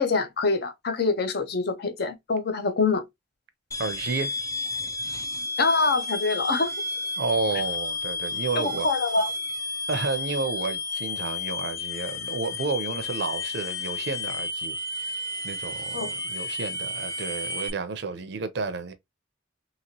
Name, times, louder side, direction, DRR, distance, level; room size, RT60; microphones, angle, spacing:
voice 1, 0.0-3.0 5.6-6.7 8.5-9.3 15.9-16.1, left 4 dB, 55° left, 0.6 m, -25 dB
sound 1, 3.7-17.7, left 3 dB, 15° left, 0.4 m, -32 dB
voice 2, 3.8-4.3 7.2-8.9 9.9-18.9, right 4 dB, 65° right, 0.5 m, -31 dB
2.9 x 2.8 x 2.7 m
head